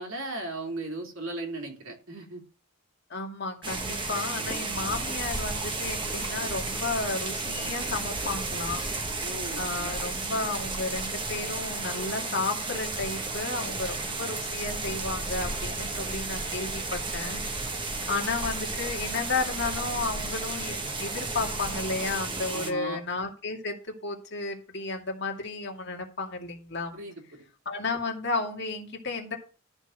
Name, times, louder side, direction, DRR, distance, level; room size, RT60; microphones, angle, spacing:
voice 1, 0.0-2.4 9.2-9.9 22.5-23.0 26.9-27.5, right 2 dB, 70° right, 1 dB, 2.9 m, -37 dB
voice 2, 3.1-8.9 9.6-17.4 18.1-27.0 27.7-29.4, left 3 dB, 50° left, 1 dB, 2.4 m, -33 dB
sound 1, 3.6-22.7, right 3 dB, 20° right, 1.3 m, -33 dB
13.5 x 4.6 x 6.4 m, 0.35 s
head